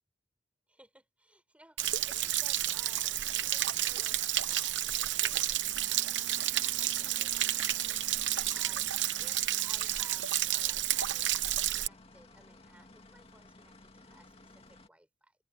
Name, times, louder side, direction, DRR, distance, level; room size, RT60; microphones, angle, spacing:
voice 1, 0.7-8.9 9.2-11.3 11.7-15.4, right 1 dB, 5° right, 5.7 m, -59 dB
sound 1, 1.8-14.9, left 2 dB, 30° left, 2.3 m, -55 dB
Stream / Splash splatter / Trickle dribble, 1.8-11.9, right 13 dB, 70° right, 1.0 m, -31 dB
head